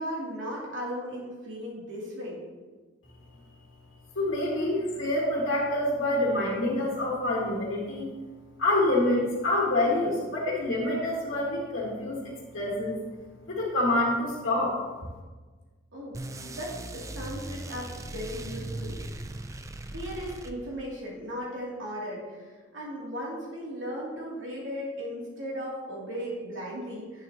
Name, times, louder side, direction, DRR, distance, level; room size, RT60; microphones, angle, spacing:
voice 1, 0.0-2.4 15.9-19.0 19.9-27.2, equal, 75° right, -4 dB, 2.8 m, -37 dB
voice 2, 4.2-8.1 8.6-13.0 13.5-14.8, left 1 dB, 75° left, -5 dB, 1.9 m, -27 dB
sound 1, 16.1-21.0, right 2 dB, 15° right, 0.4 m, -39 dB
10.0 x 8.8 x 2.9 m, 1.4 s
head